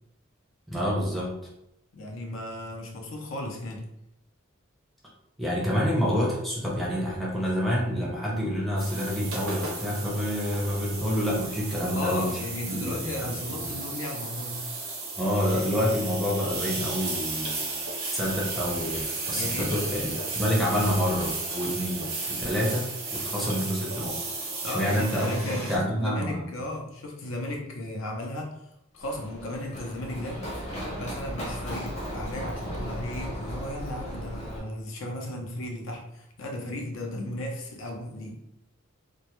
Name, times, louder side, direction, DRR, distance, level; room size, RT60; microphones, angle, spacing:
voice 1, 0.7-1.3 5.4-12.4 12.7-13.7 15.2-17.8 18.1-22.9 23.2-24.2 24.6-26.5, equal, ahead, -5 dB, 0.5 m, -28 dB
voice 2, 1.9-3.8 5.7-5.8 11.9-14.7 19.3-19.7 20.7-20.8 24.6-28.6 28.9-30.4 30.9-38.4, left 1 dB, 75° left, 0 dB, 0.5 m, -35 dB
sound 1, 8.8-25.8, right 3 dB, 85° right, 0.7 m, -34 dB
Run, 29.0-34.6, equal, 35° left, 0.8 m, -36 dB
2.2 x 2.0 x 2.9 m, 0.81 s
head